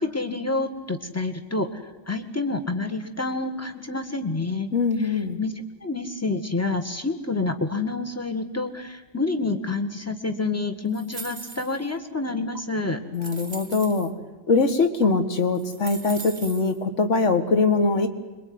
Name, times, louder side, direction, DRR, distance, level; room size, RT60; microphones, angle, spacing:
voice 1, 0.0-4.7 5.4-5.5 5.8-13.0, left 3 dB, 10° left, 6 dB, 1.6 m, -28 dB
voice 2, 4.7-5.4 13.1-14.1 14.5-18.1, left 4 dB, 40° left, 8 dB, 2.0 m, -22 dB
sound 1, 10.9-11.9 12.6-12.7 13.1-14.1 15.0-15.1 15.5-16.8, right 3 dB, 25° right, 1.2 m, -39 dB
26.0 x 23.0 x 9.6 m, 1.2 s
omnidirectional pair, 2.2 m